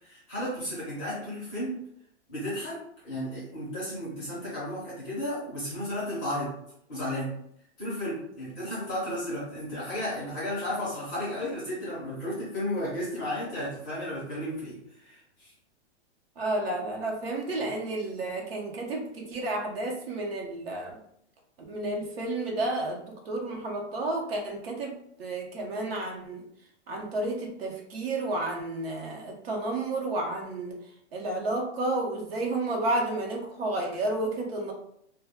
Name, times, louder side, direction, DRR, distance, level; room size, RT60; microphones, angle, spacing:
voice 1, 0.0-1.7 2.3-6.5 6.9-7.3 7.8-15.5, left 1 dB, 15° left, -8 dB, 0.5 m, -33 dB
voice 2, 16.4-20.9 21.7-26.4 26.9-30.8 31.1-34.7, right 2 dB, 60° right, 0 dB, 0.8 m, -31 dB
2.2 x 2.1 x 3.4 m, 0.73 s
hypercardioid pair, 170°, 35 cm